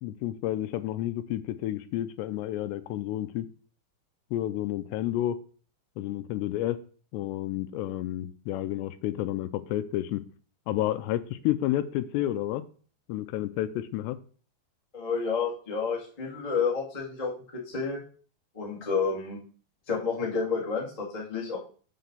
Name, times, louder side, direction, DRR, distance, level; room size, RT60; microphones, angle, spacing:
voice 1, 0.0-3.5 4.3-5.4 6.0-6.8 7.1-10.2 10.7-12.6 13.1-14.2, left 13 dB, 85° left, 12 dB, 2.7 m, -30 dB
voice 2, 14.9-17.3 17.6-18.0 18.5-19.4 19.9-21.6, left 5 dB, 20° left, -4 dB, 1.0 m, -30 dB
5.9 x 5.4 x 6.8 m, 0.41 s
omnidirectional pair, 5.0 m